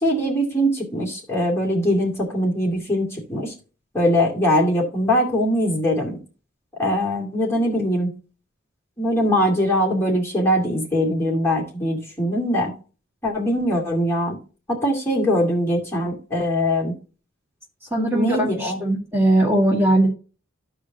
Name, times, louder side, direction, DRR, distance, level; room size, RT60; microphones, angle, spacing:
voice 1, 0.0-3.5 3.9-6.2 6.8-8.1 9.0-12.7 13.2-14.4 14.7-16.9 18.1-18.8, equal, 15° left, -4 dB, 2.3 m, -22 dB
voice 2, 17.9-20.1, right 1 dB, 10° right, -3 dB, 2.3 m, -19 dB
14.5 x 4.9 x 2.8 m, 0.35 s
head